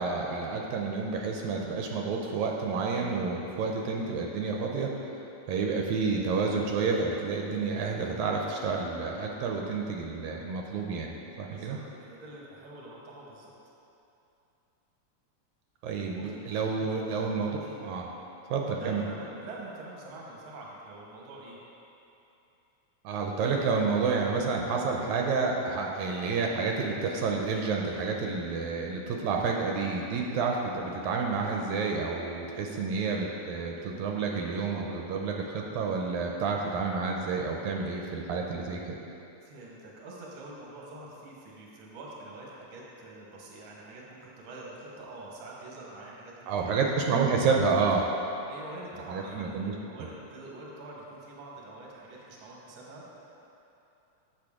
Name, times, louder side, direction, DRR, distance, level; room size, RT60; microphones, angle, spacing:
voice 1, 0.0-4.9 5.5-11.8 15.8-18.1 18.5-19.1 23.0-39.0 46.5-48.0 49.1-49.7, right 4 dB, 85° right, 0 dB, 1.9 m, -29 dB
voice 2, 11.5-13.5 16.1-16.3 16.7-17.0 17.6-17.9 18.7-21.6 39.4-46.8 48.5-53.4, right 2 dB, 55° right, -3 dB, 1.5 m, -45 dB
7.7 x 6.5 x 3.6 m, 2.9 s
omnidirectional pair, 3.4 m